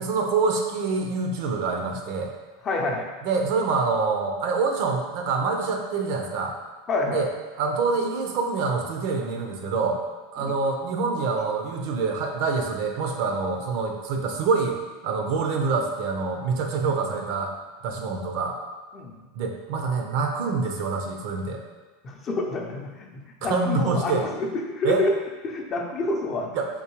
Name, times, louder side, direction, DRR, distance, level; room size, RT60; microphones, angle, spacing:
voice 1, 0.0-2.3 3.2-6.5 7.1-7.3 7.6-10.0 10.3-17.5 17.8-18.6 19.3-21.6 23.4-24.3 24.8-25.0 26.5-26.7, right 4 dB, 65° right, 2 dB, 0.5 m, -26 dB
voice 2, 2.6-3.1 6.9-7.2 10.4-10.5 18.9-19.2 22.0-25.1 25.4-26.5, left 2 dB, 35° left, 1 dB, 0.5 m, -28 dB
3.7 x 2.7 x 3.0 m, 1.3 s
supercardioid pair, 110°, 0 cm